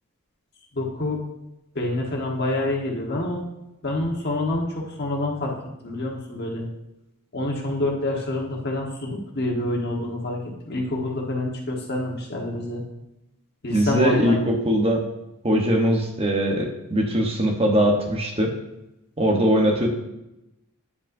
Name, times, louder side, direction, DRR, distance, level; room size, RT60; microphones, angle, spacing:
voice 1, 0.7-1.2 1.7-3.4 3.8-5.6 5.8-6.6 7.3-12.8 13.6-14.4, left 2 dB, 50° left, -1 dB, 1.3 m, -27 dB
voice 2, 13.7-15.0 15.4-18.5 19.2-19.9, right 1 dB, 25° right, 1 dB, 1.0 m, -21 dB
9.4 x 5.2 x 2.7 m, 0.92 s
head